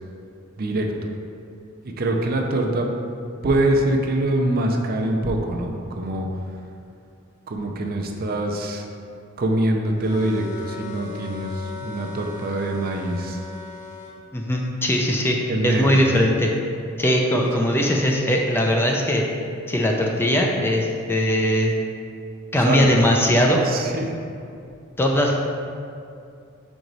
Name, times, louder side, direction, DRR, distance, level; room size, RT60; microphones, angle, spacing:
voice 1, 0.6-0.9 1.8-2.9 3.4-6.3 7.5-8.8 9.4-13.4 15.5-15.9 22.6-23.0 23.6-24.1, right 1 dB, 45° right, 2 dB, 0.5 m, -24 dB
sound 1, 10.0-14.1, left 4 dB, 35° left, 0.8 m, -38 dB
voice 2, 14.3-15.4 15.6-16.5 17.0-19.2 19.7-21.7 22.5-23.7 25.0-25.3, equal, 10° left, 0 dB, 0.4 m, -20 dB
5.1 x 4.7 x 4.0 m, 2.5 s
head